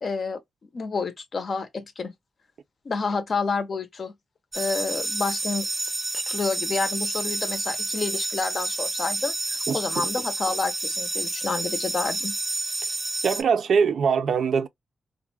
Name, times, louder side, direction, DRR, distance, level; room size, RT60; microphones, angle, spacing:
voice 1, 0.0-0.4 0.7-2.1 2.8-4.1 4.5-5.7 6.1-12.3, left 4 dB, 50° left, 0.6 m, -29 dB
sound 1, 4.5-13.4, right 2 dB, 20° right, 0.6 m, -29 dB
voice 2, 9.7-10.1 13.2-14.7, right 6 dB, 70° right, 0.3 m, -23 dB
2.3 x 2.0 x 3.2 m
cardioid pair, 100°, 0 cm